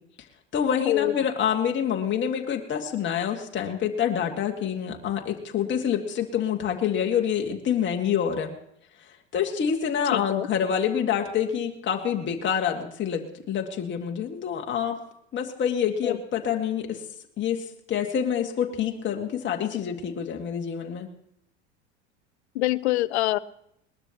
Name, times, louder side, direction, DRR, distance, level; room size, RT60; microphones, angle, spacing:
voice 1, 0.5-8.5 9.3-15.0 15.3-17.0 17.4-21.1, left 8 dB, 30° left, 2 dB, 2.0 m, -27 dB
voice 2, 10.1-10.5 16.0-16.2 22.5-23.4, left 16 dB, 70° left, 19 dB, 0.8 m, -24 dB
21.0 x 20.0 x 3.0 m, 0.75 s
hypercardioid pair, 80°, 35 cm